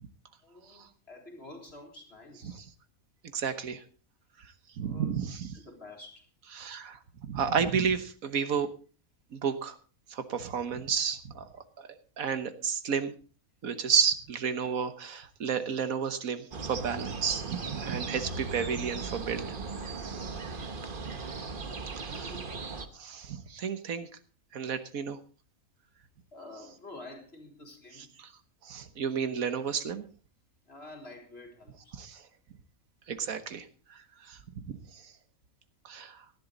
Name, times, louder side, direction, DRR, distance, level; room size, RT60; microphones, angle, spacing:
voice 1, 0.4-2.6 4.8-5.1 5.5-6.3 22.0-22.5 26.3-28.1 30.7-31.9, left 2 dB, 45° left, 1 dB, 4.0 m, -48 dB
voice 2, 3.3-3.8 4.4-5.6 6.5-7.0 7.3-8.7 9.3-9.8 10.1-11.9 12.2-13.1 13.6-19.6 22.0-22.3 22.9-24.1 24.5-25.2 28.0-28.3 28.6-30.1 31.9-32.3 33.1-34.4 34.6-35.1 35.8-36.2, right 7 dB, 70° right, 11 dB, 1.5 m, -32 dB
sound 1, 16.5-22.9, right 4 dB, 40° right, 1.2 m, -38 dB
18.0 x 12.0 x 3.9 m, 0.37 s
omnidirectional pair, 1.5 m